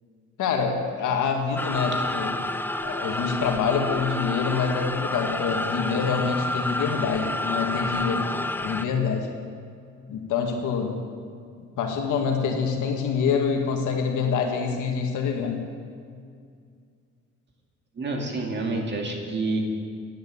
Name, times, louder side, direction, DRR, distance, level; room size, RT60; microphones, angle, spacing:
voice 1, 0.4-2.3 2.8-8.3 8.6-9.3 10.1-11.0 11.8-15.6, left 6 dB, 80° left, 2 dB, 1.8 m, -26 dB
sound 1, 1.6-8.9, left 1 dB, 5° left, 0.5 m, -29 dB
voice 2, 18.0-19.6, right 2 dB, 35° right, 1 dB, 2.5 m, -28 dB
11.0 x 10.0 x 7.0 m, 2.2 s
cardioid pair, 90°, 30 cm